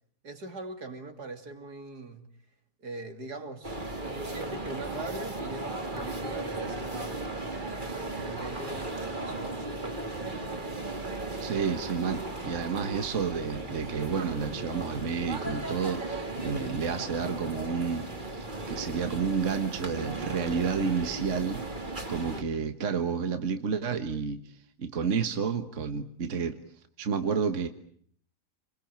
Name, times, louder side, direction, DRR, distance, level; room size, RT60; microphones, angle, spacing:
voice 1, 0.2-2.3 2.8-3.8 4.0-10.7, right 2 dB, 70° right, 3.6 m, -42 dB
sound 1, 3.6-22.4, right 2 dB, 30° right, 2.8 m, -36 dB
voice 2, 11.4-21.6 22.1-26.6 27.0-27.7, right 6 dB, 50° right, 1.7 m, -30 dB
29.5 x 22.5 x 8.8 m
omnidirectional pair, 1.8 m